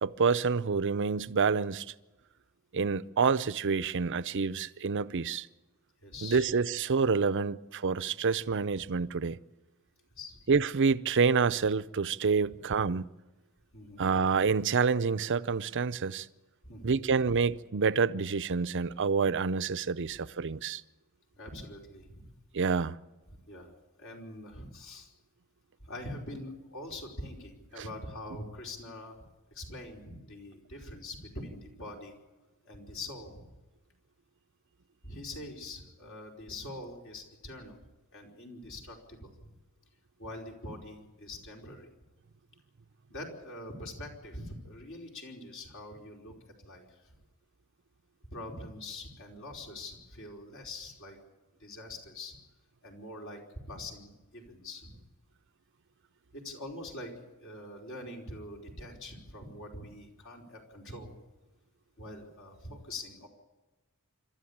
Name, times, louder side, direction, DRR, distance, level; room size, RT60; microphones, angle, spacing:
voice 1, 0.0-1.8 2.7-5.5 6.2-9.4 10.5-13.0 14.0-16.3 16.8-20.8 22.5-23.0, right 5 dB, 55° right, 0.6 m, -28 dB
voice 2, 6.0-6.5 10.2-10.4 12.4-12.6 13.7-14.0 16.6-17.0 17.2-17.3 20.1-20.2 21.4-22.3 23.3-23.7 24.0-25.1 25.8-32.2 32.6-33.5 35.0-37.8 38.1-39.5 40.2-41.9 43.1-47.2 48.3-51.2 51.6-52.4 52.8-53.4 53.7-55.0 56.3-61.2 62.0-63.3, left 1 dB, 60° left, 4.8 m, -44 dB
26.5 x 13.0 x 8.7 m
head